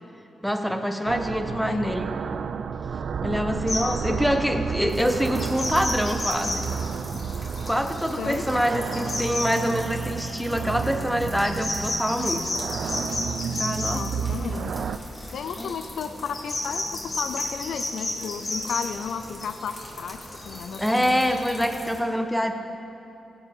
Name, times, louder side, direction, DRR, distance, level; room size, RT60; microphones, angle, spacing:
voice 1, 0.4-2.1 3.2-6.7 7.6-12.4 13.4-14.5 15.6-15.7 20.8-22.5, equal, 5° left, 6 dB, 1.1 m, -25 dB
sound 1, 1.1-15.0, right 6 dB, 75° right, 0.4 m, -31 dB
voice 2, 1.5-1.9 3.8-4.2 8.2-8.5 13.9-14.7 15.3-21.3, left 6 dB, 80° left, 9 dB, 0.4 m, -34 dB
sound 2, 3.7-3.9 5.4-10.5 11.4-14.0 15.1-21.5, left 2 dB, 55° left, 2.0 m, -32 dB
sound 3, 4.9-22.0, equal, 20° left, 2.9 m, -43 dB
17.0 x 8.3 x 3.7 m, 2.9 s
supercardioid pair, 50°, 0 cm